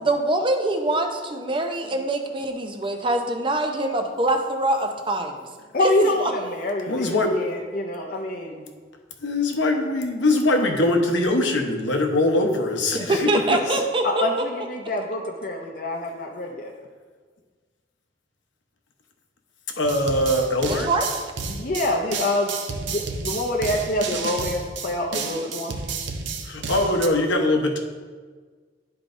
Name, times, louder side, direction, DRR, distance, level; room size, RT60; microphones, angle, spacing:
voice 1, 0.0-5.4 5.8-6.3 12.9-14.3 20.7-21.1, right 2 dB, 25° right, 4 dB, 0.6 m, -24 dB
voice 2, 5.7-8.7 14.0-16.7 21.5-22.5 22.8-25.7, left 1 dB, 50° left, 0 dB, 0.6 m, -26 dB
voice 3, 6.9-7.3 9.2-13.3 13.7-13.8 19.8-20.9 26.5-27.8, left 2 dB, 90° left, 3 dB, 0.9 m, -22 dB
sound 1, 19.8-27.1, right 4 dB, 85° right, 0.7 m, -31 dB
11.0 x 4.7 x 2.6 m, 1.5 s
head